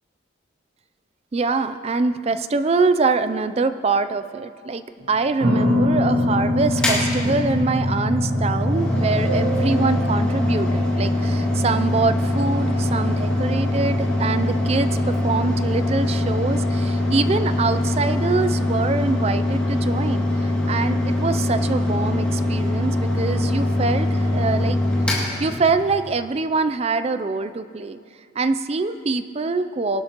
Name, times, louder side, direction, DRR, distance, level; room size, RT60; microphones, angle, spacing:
voice 1, 1.3-24.8 25.4-28.0 28.4-30.0, right 3 dB, 30° right, 11 dB, 0.4 m, -24 dB
sound 1, 5.0-16.8, left 1 dB, 80° right, 1.6 m, -26 dB
Mechanical fan, 6.7-26.1, left 1 dB, 5° left, 2.4 m, -23 dB
22.5 x 12.0 x 3.0 m, 2.1 s
head